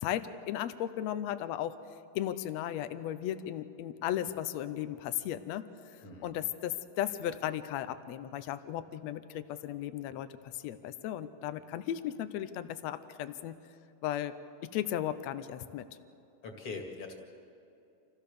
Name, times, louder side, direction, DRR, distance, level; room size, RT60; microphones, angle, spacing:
voice 1, 0.0-1.8 2.1-10.3 10.5-13.6 14.0-14.3 14.6-15.9, left 11 dB, 75° left, 11 dB, 1.6 m, -36 dB
voice 2, 6.0-6.3 16.4-17.1, left 3 dB, 45° left, 2 dB, 2.7 m, -42 dB
27.0 x 16.0 x 6.8 m, 2.7 s
omnidirectional pair, 3.8 m